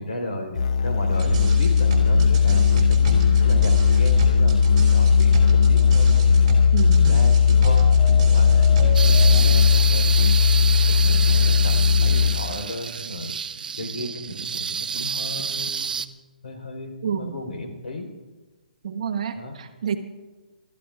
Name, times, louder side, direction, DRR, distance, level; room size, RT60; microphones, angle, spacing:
voice 1, 0.0-6.5 6.9-10.3 11.0-13.4 13.8-15.9 16.4-18.1 19.4-19.6, left 2 dB, 85° left, 3 dB, 3.6 m, -34 dB
Musical instrument, 0.5-12.6, left 6 dB, 50° left, 0.6 m, -17 dB
sound 1, 1.1-9.4, right 4 dB, 30° right, 2.8 m, -29 dB
voice 2, 6.7-7.2 17.0-17.4 18.8-20.0, right 7 dB, 45° right, 7 dB, 1.0 m, -28 dB
sound 2, 8.9-16.1, right 6 dB, 65° right, 0.6 m, -29 dB
28.5 x 13.5 x 2.4 m, 1.3 s
hypercardioid pair, 165°, 5 cm